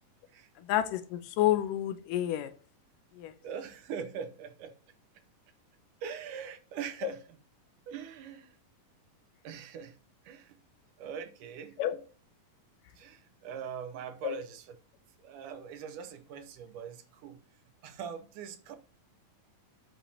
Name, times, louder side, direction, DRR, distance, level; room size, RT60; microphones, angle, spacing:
voice 1, 0.6-2.5 3.1-3.3 7.0-7.1 11.8-11.9 14.2-14.4, left 13 dB, 80° left, 2.2 m, -29 dB
voice 2, 3.4-4.7 6.0-7.2 7.9-8.6 9.4-10.0 10.3-10.6 11.0-11.8 13.0-14.7 15.2-17.4 17.8-18.7, right 7 dB, 70° right, 2.3 m, -42 dB
13.5 x 6.1 x 2.8 m
omnidirectional pair, 4.0 m